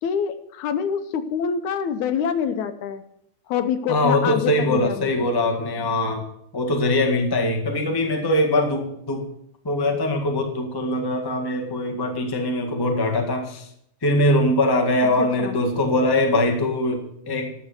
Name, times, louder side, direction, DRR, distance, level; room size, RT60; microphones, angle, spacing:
voice 1, 0.0-3.0 3.5-5.3 15.2-15.6, left 7 dB, 75° left, 10 dB, 2.0 m, -26 dB
voice 2, 3.9-6.3 6.5-9.3 9.6-13.7 14.0-17.5, left 1 dB, 35° left, 2 dB, 0.3 m, -22 dB
11.0 x 7.3 x 7.9 m, 0.74 s
omnidirectional pair, 3.7 m